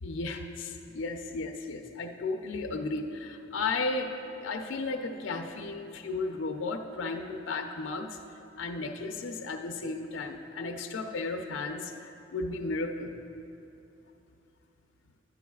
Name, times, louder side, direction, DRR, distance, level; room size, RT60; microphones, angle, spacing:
voice 1, 0.0-8.2 8.6-11.9 12.3-13.1, left 3 dB, 85° left, 4 dB, 0.5 m, -34 dB
12.5 x 9.0 x 2.3 m, 2.8 s
head